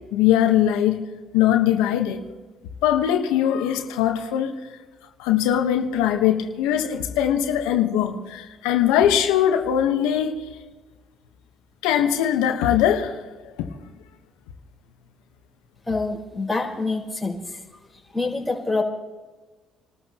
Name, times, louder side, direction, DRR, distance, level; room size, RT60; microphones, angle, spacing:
voice 1, 0.1-1.0 1.3-2.2 2.8-4.6 5.2-10.3 11.8-13.2 13.6-13.7, left 10 dB, 85° left, 6 dB, 1.2 m, -21 dB
voice 2, 15.9-17.6 18.1-18.8, left 3 dB, 5° left, -4 dB, 4.7 m, -26 dB
28.0 x 13.5 x 3.0 m, 1.3 s
supercardioid pair, 75°, 0 cm